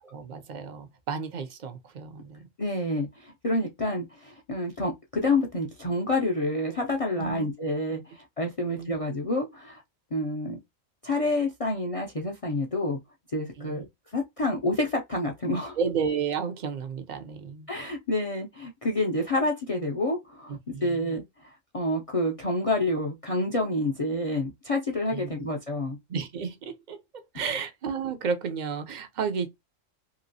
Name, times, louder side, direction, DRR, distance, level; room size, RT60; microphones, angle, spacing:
voice 1, 0.0-2.4 7.2-7.5 8.6-9.0 13.6-13.9 15.8-17.7 20.5-21.1 25.1-25.3 26.1-27.0 27.3-29.5, right 6 dB, 55° right, 0.5 m, -32 dB
voice 2, 2.6-9.8 10.1-10.6 11.0-13.0 13.3-13.9 14.1-15.8 17.7-20.6 20.8-26.0 27.3-27.4, left 2 dB, 55° left, 0.4 m, -28 dB
2.9 x 2.8 x 2.6 m
omnidirectional pair, 1.3 m